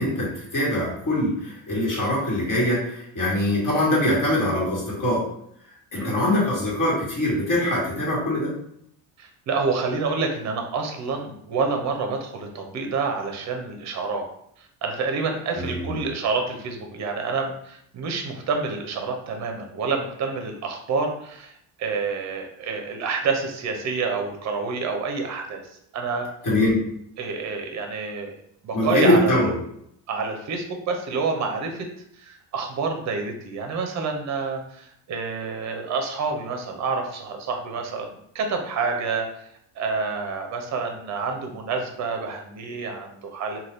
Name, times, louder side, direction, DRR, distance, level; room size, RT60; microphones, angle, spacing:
voice 1, 0.0-5.3 5.9-8.5 15.5-15.9 26.4-26.8 28.7-29.5, left 1 dB, 40° left, -5 dB, 1.4 m, -23 dB
voice 2, 9.2-14.3 14.6-21.5 21.8-25.7 25.9-26.3 27.2-28.3 28.6-29.5 30.1-31.9 32.2-39.5 39.8-43.6, right 4 dB, 35° right, 4 dB, 0.6 m, -28 dB
2.7 x 2.2 x 3.4 m, 0.72 s
cardioid pair, 130°, 47 cm